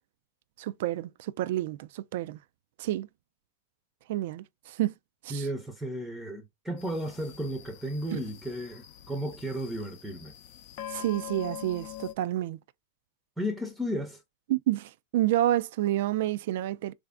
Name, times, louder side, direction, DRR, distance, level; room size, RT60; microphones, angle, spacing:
voice 1, 0.6-2.4 2.8-3.1 4.1-4.9 5.2-5.5 8.1-8.2 10.9-12.6 14.5-16.9, right 14 dB, 60° right, 0.3 m, -29 dB
voice 2, 5.3-10.3 13.4-14.2, equal, 5° right, 0.6 m, -34 dB
sound 1, 6.8-12.1, left 11 dB, 50° left, 0.5 m, -44 dB
3.2 x 2.5 x 3.4 m
hypercardioid pair, 125°, 0 cm